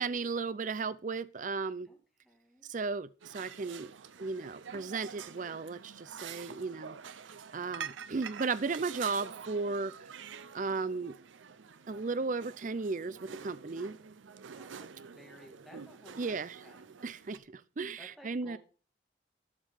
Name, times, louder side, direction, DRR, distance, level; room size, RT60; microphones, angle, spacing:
voice 1, 0.0-1.9 2.6-3.9 4.2-7.0 7.5-9.9 10.5-11.2 11.9-14.0 16.2-16.5 17.0-18.6, right 4 dB, 40° right, 0.5 m, -35 dB
voice 2, 1.8-2.7 7.6-8.5 14.5-17.0 18.0-18.6, equal, ahead, 2.3 m, -57 dB
sound 1, 3.2-17.4, right 7 dB, 85° right, 0.6 m, -47 dB
13.0 x 5.5 x 5.5 m
head